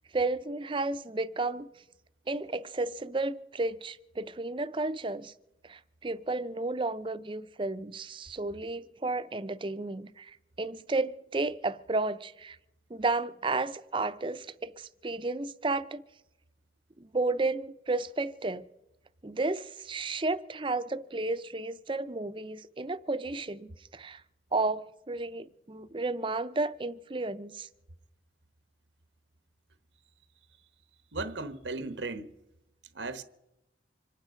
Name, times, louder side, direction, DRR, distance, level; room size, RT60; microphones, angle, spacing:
voice 1, 0.1-1.7 2.3-5.3 5.6-12.6 12.9-16.0 17.0-18.6 19.2-24.2 24.5-27.7, right 3 dB, 30° right, 0.6 m, -32 dB
voice 2, 31.1-32.3 32.9-33.2, right 3 dB, 85° right, 1.1 m, -36 dB
26.0 x 9.3 x 5.1 m
head